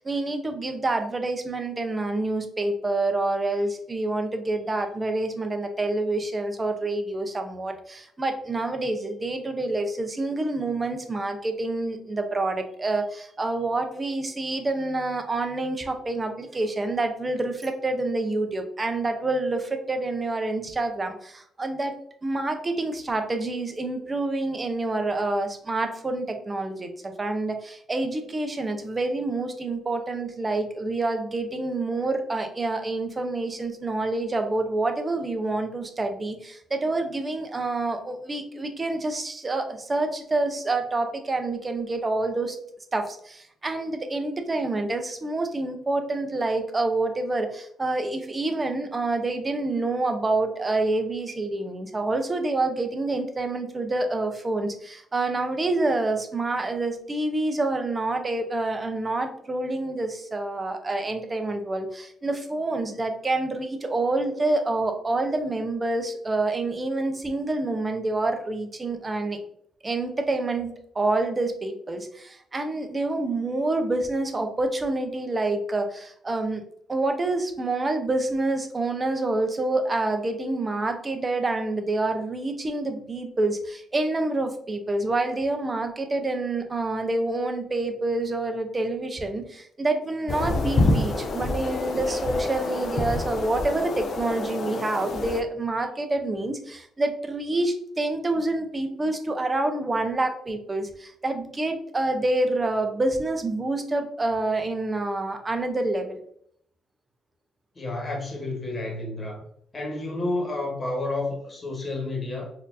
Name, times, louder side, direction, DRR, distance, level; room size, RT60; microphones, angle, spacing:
voice 1, 0.0-21.9 22.2-42.6 42.9-69.4 69.8-76.6 76.9-106.2, right 2 dB, 25° right, 6 dB, 0.6 m, -27 dB
sound 1, 90.3-95.4, left 2 dB, 55° left, 0.5 m, -27 dB
voice 2, 107.7-109.4 109.7-112.5, left 2 dB, 30° left, -1 dB, 1.3 m, -30 dB
4.3 x 2.6 x 2.5 m, 0.67 s
cardioid pair, 90°, 0 cm